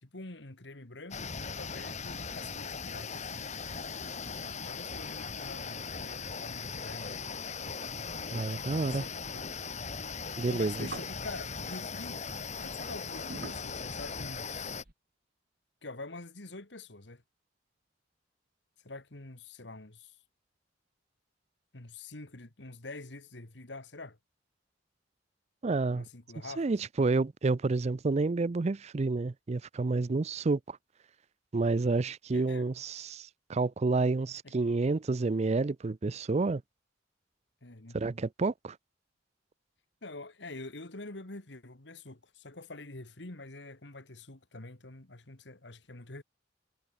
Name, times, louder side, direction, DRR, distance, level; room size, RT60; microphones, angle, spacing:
voice 1, 0.0-3.5 4.4-7.3 8.4-9.5 10.5-12.2 12.6-14.8 15.8-17.2 18.8-20.2 21.7-24.2 25.9-26.7 32.3-32.7 34.4-34.5 37.6-38.0 40.0-46.2, left 2 dB, 70° left, 2.1 m, -46 dB
sound 1, 1.1-14.8, left 5 dB, 40° left, 1.8 m, -39 dB
voice 2, 8.3-9.0 10.4-10.9 25.6-26.1 26.6-30.8 31.5-36.6 37.9-38.8, right 3 dB, 35° right, 0.5 m, -29 dB
sound 2, 9.1-9.8 10.3-14.9, right 2 dB, 55° right, 2.0 m, -48 dB
head